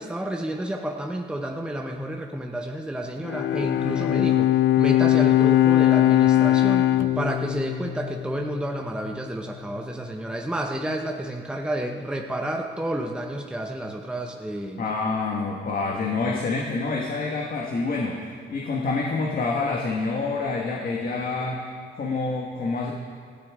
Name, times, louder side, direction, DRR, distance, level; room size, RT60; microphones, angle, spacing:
voice 1, 0.0-4.5 4.8-14.9, right 1 dB, 5° right, 2 dB, 1.0 m, -30 dB
Bowed string instrument, 3.2-8.7, left 13 dB, 70° left, 0.6 m, -20 dB
voice 2, 14.8-21.6 22.0-22.9, left 3 dB, 45° left, -2 dB, 1.6 m, -27 dB
18.5 x 13.5 x 3.7 m, 2.1 s
cardioid pair, 90°, 20 cm